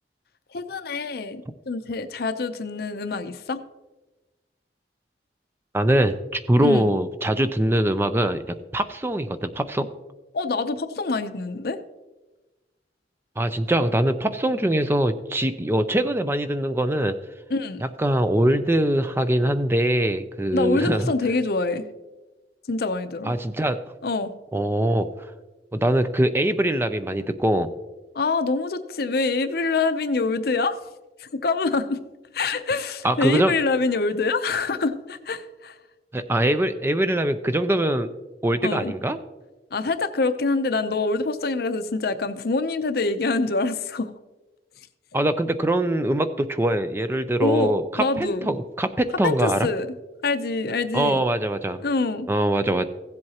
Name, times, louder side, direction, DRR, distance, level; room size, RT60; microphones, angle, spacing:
voice 1, 0.5-3.6 6.6-6.9 10.3-11.8 17.5-17.8 20.5-21.9 22.7-23.3 24.0-24.3 28.1-30.8 31.2-32.0 32.3-35.8 38.6-38.9 39.7-44.1 47.4-48.5 49.2-49.9 50.2-51.2 51.8-52.3, left 3 dB, 60° left, 0.6 m, -25 dB
voice 2, 5.7-8.4 8.7-9.9 13.4-17.2 18.0-21.1 23.2-23.8 24.5-25.1 25.7-27.7 33.0-33.5 36.1-38.1 38.4-39.2 45.1-49.7 50.9-51.8 52.3-52.8, right 1 dB, 15° right, 0.4 m, -22 dB
16.0 x 7.7 x 2.9 m
head